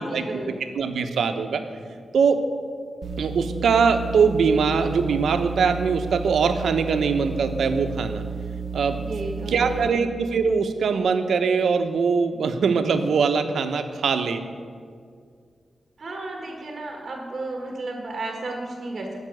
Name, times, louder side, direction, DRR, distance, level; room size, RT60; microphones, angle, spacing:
voice 1, 0.0-0.6 9.0-9.8 16.0-19.2, right 2 dB, 40° right, 1 dB, 1.7 m, -33 dB
voice 2, 0.8-1.6 2.1-2.4 3.2-8.2 8.7-9.0 9.5-14.4, right 5 dB, 90° right, 7 dB, 1.0 m, -22 dB
sound 1, 3.0-9.9, right 5 dB, 60° right, 1.1 m, -32 dB
15.5 x 5.9 x 9.4 m, 2.1 s
wide cardioid pair, 120°, 0 cm